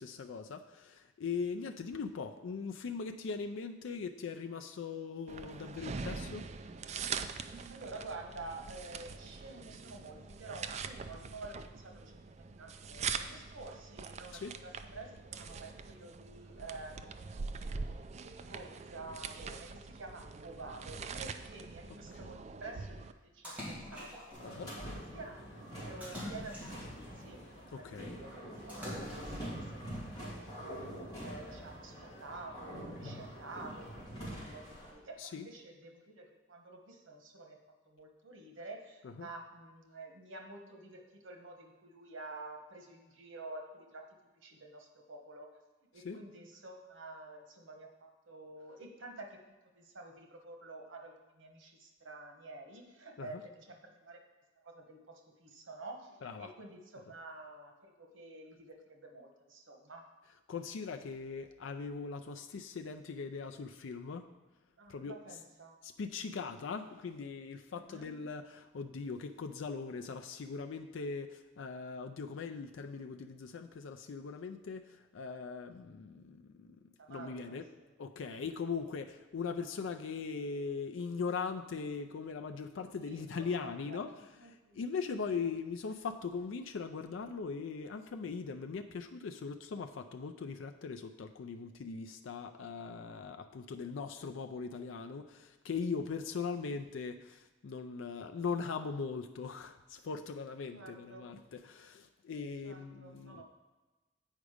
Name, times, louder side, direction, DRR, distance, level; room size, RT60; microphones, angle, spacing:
voice 1, 0.0-6.5 14.3-14.6 21.9-22.3 24.4-24.8 27.7-28.2 35.2-35.5 39.0-39.3 45.9-46.2 53.2-53.4 56.2-56.5 60.5-64.3 64.9-65.2 65.8-77.7 78.0-103.4, left 5 dB, 85° left, 6 dB, 0.4 m, -40 dB
sound 1, 5.3-23.1, right 5 dB, 35° right, 0.3 m, -43 dB
voice 2, 7.7-17.6 18.2-24.4 24.7-25.5 25.8-27.4 27.8-37.6 37.9-44.1 44.4-45.5 45.9-49.4 49.7-54.2 54.6-60.1 64.8-65.8 67.7-68.1 77.0-77.6 83.0-83.3 83.6-84.0 84.4-84.8 100.7-101.3 102.6-103.4, right 2 dB, 90° right, 3 dB, 1.2 m, -49 dB
Splash splatter, 23.4-24.4 26.0-27.1 28.7-29.5, left 1 dB, 10° right, 1.8 m, -44 dB
sound 2, 24.3-34.9, equal, 20° left, 2.6 m, -45 dB
8.2 x 5.0 x 4.9 m, 1.2 s
head